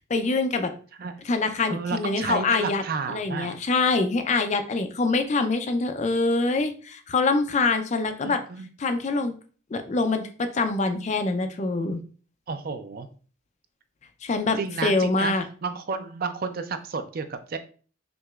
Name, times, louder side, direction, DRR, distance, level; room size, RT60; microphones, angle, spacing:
voice 1, 0.1-0.7 1.3-2.8 3.1-8.4 8.8-9.3 9.7-12.0 14.2-15.4, left 3 dB, 35° left, 7 dB, 0.4 m, -25 dB
voice 2, 1.7-3.6 8.2-8.7 12.5-13.1 14.6-17.6, right 5 dB, 45° right, 9 dB, 0.4 m, -31 dB
6.0 x 2.9 x 2.3 m, 0.40 s
head